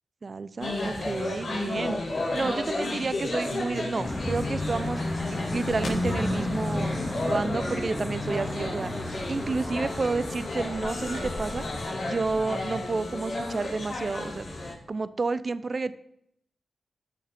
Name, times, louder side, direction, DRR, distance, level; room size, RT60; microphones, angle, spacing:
voice 1, 0.2-6.9 7.2-8.9 9.3-11.7 12.0-14.6 14.9-15.9, right 3 dB, 50° right, 15 dB, 0.7 m, -30 dB
sound 1, 0.6-14.7, left 2 dB, 60° left, 3.7 m, -33 dB
sound 2, 4.0-11.8, left 1 dB, 20° left, 2.7 m, -32 dB
Wind instrument woodwind instrument, 9.7-14.0, left 5 dB, 85° left, 0.9 m, -43 dB
14.0 x 6.2 x 5.3 m, 0.74 s
cardioid pair, 45°, 0 cm